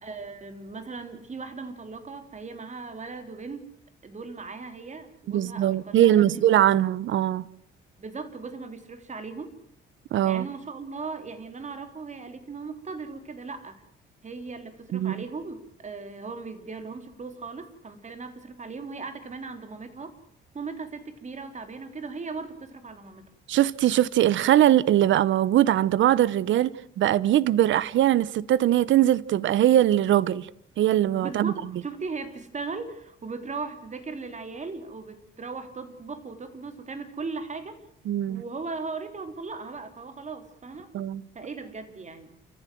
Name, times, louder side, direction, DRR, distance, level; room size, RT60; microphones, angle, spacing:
voice 1, 0.0-3.7 4.0-6.4 8.0-9.6 10.2-13.8 14.2-20.1 20.5-23.3 31.2-37.8 38.3-40.9 41.3-42.4, right 4 dB, 35° right, 3.6 m, -38 dB
voice 2, 5.3-7.5 10.1-10.5 14.9-15.1 23.5-30.5 30.8-31.5 38.1-38.4 40.9-41.2, right 12 dB, 70° right, 0.9 m, -21 dB
30.0 x 15.0 x 7.8 m
cardioid pair, 90°, 20 cm